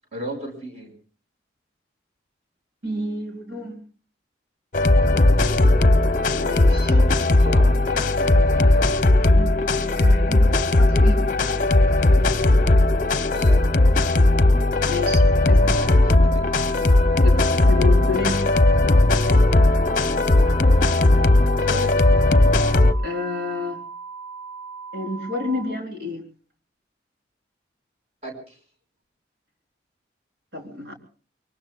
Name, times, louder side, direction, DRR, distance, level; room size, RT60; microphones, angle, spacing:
voice 1, 0.1-0.9 6.7-7.1 7.4-8.9 13.3-13.7 15.7-16.5 21.6-21.9 28.2-28.6, right 1 dB, 35° right, 2 dB, 5.9 m, -35 dB
voice 2, 2.8-3.8 6.4-6.9 9.4-11.3 14.9-15.8 17.2-18.5 23.0-23.8 24.9-26.2 30.5-31.0, left 2 dB, 80° right, 1 dB, 3.9 m, -30 dB
sound 1, 4.7-22.9, left 2 dB, 45° left, 0.7 m, -17 dB
sound 2, 15.6-25.6, right 5 dB, 15° right, 6.0 m, -38 dB
24.5 x 24.0 x 2.4 m, 0.40 s
head